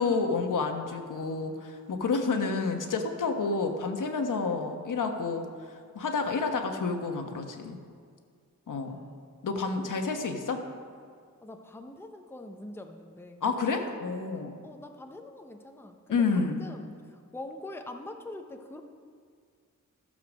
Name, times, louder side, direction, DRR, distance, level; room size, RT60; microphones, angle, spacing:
voice 1, 0.0-7.8 8.7-9.0 9.4-10.6 13.4-14.5 16.1-16.7, left 4 dB, 75° left, 5 dB, 1.1 m, -29 dB
voice 2, 9.8-10.2 11.4-13.5 14.3-18.8, left 1 dB, 5° left, 5 dB, 0.6 m, -44 dB
13.0 x 6.5 x 6.3 m, 2.1 s
wide cardioid pair, 145°, 32 cm